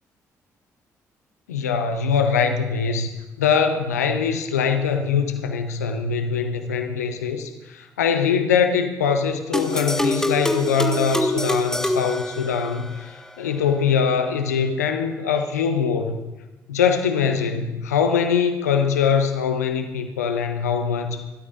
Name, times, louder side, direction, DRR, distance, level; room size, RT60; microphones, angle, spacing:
voice 1, 1.5-3.1 3.4-16.2 16.7-21.2, left 6 dB, 80° left, 8 dB, 0.8 m, -22 dB
sound 1, 9.5-13.0, left 1 dB, 5° left, 1.5 m, -25 dB
22.5 x 13.0 x 2.5 m, 1.1 s
figure-of-eight pair, 45°, 9 cm